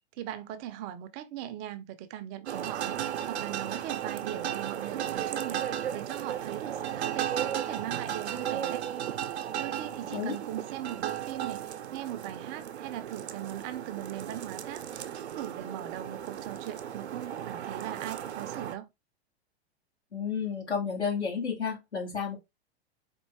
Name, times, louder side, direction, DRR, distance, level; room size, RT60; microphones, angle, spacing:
voice 1, 0.2-5.7 5.9-8.8 9.2-9.3 9.6-18.9, right 12 dB, 35° right, 0.5 m, -40 dB
sound 1, 2.5-18.7, right 10 dB, 75° right, 0.6 m, -35 dB
voice 2, 20.1-22.4, left 6 dB, 85° left, 2.3 m, -31 dB
4.4 x 2.7 x 3.2 m
hypercardioid pair, 100°, 33 cm